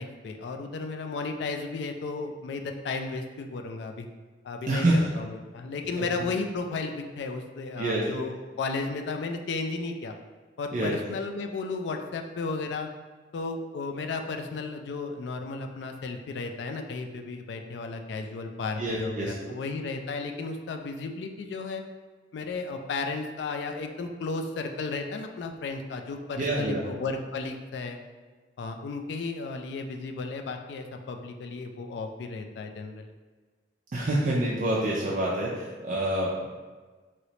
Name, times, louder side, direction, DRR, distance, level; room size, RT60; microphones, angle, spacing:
voice 1, 0.0-4.1 4.4-10.1 10.6-12.9 13.3-21.8 22.3-28.0 28.6-33.0, left 3 dB, 65° left, 5 dB, 0.3 m, -34 dB
voice 2, 4.7-5.0 6.0-6.1 7.8-8.0 10.7-11.0 18.8-19.5 26.4-26.8 33.9-36.5, right 1 dB, 45° right, -5 dB, 0.4 m, -27 dB
3.1 x 3.0 x 2.8 m, 1.4 s
head